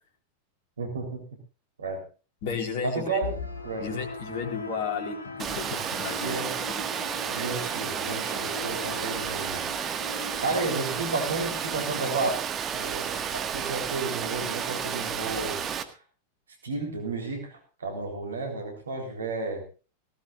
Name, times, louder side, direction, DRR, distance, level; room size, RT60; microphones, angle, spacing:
voice 1, 0.8-1.2 1.8-2.0 2.8-3.3 3.6-3.9 6.2-6.6 7.3-9.7 10.4-12.4 12.7-15.6 16.6-19.6, right 3 dB, 70° right, 4 dB, 3.9 m, -32 dB
voice 2, 2.4-3.2 3.8-6.4, left 5 dB, 50° left, 5 dB, 4.1 m, -33 dB
sound 1, 3.2-12.2, left 4 dB, 75° left, 1.8 m, -40 dB
Water, 5.4-15.8, right 8 dB, 25° right, 1.8 m, -32 dB
19.0 x 17.5 x 2.5 m, 0.34 s
figure-of-eight pair, 90°, 0 cm